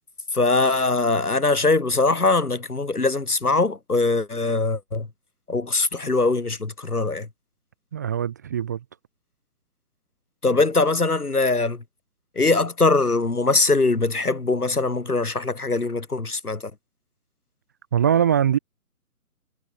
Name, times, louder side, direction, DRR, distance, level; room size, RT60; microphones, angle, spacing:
voice 1, 0.3-5.1 5.5-7.3 10.4-11.8 12.4-16.6, left 3 dB, 75° left, 3.8 m, -22 dB
voice 2, 7.9-8.8 17.9-18.6, right 9 dB, 10° right, 0.8 m, -21 dB
figure-of-eight pair, 140°, 45 cm